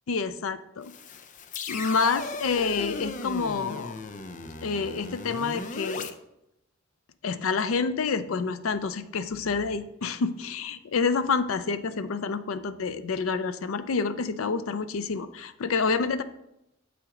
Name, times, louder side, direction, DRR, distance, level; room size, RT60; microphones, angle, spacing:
voice 1, 0.1-0.9 1.7-4.0 4.6-6.1 7.2-16.2, left 4 dB, 90° left, 12 dB, 0.5 m, -28 dB
sound 1, 0.8-6.1, left 3 dB, 40° left, 0.5 m, -37 dB
7.1 x 5.9 x 3.7 m, 0.85 s
head